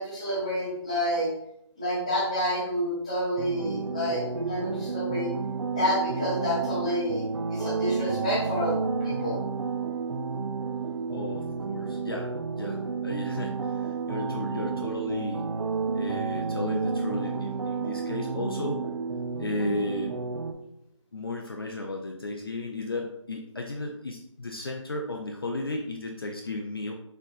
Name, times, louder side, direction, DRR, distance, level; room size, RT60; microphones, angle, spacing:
voice 1, 0.0-1.3 1.8-5.3 5.7-7.2 7.5-9.4, equal, 15° left, -7 dB, 0.8 m, -29 dB
sound 1, 3.4-20.5, right 5 dB, 70° right, 0.5 m, -31 dB
voice 2, 11.1-15.5 15.9-18.9 19.4-20.2 21.1-26.9, left 2 dB, 50° left, 1 dB, 0.4 m, -34 dB
4.2 x 3.8 x 2.4 m, 0.76 s
figure-of-eight pair, 175°, 16 cm